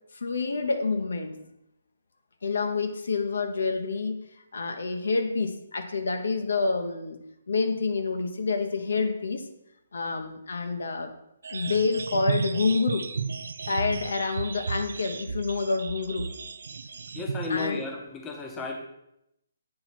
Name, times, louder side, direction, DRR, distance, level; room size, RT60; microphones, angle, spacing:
voice 1, 0.1-1.4 2.4-4.2 4.5-7.2 7.5-9.5 9.9-11.1 11.5-13.1 13.7-16.3 17.5-17.8, left 4 dB, 80° left, 6 dB, 0.8 m, -28 dB
sound 1, 11.4-17.7, right 5 dB, 75° right, 0.3 m, -34 dB
voice 2, 17.1-18.8, left 4 dB, 15° left, 2 dB, 0.7 m, -33 dB
8.6 x 2.9 x 4.2 m, 0.81 s
hypercardioid pair, 160°, 0 cm